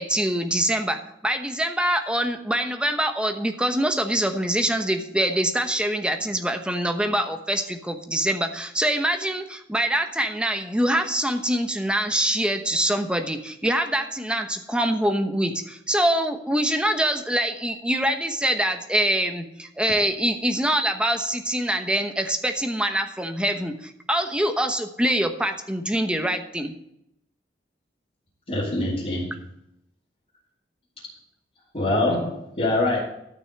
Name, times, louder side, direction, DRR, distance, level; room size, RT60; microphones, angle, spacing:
voice 1, 0.0-26.7, right 1 dB, 5° right, 5 dB, 1.0 m, -24 dB
voice 2, 28.5-29.4 31.7-33.0, left 2 dB, 35° left, -9 dB, 3.1 m, -24 dB
13.5 x 6.3 x 6.6 m, 0.78 s
head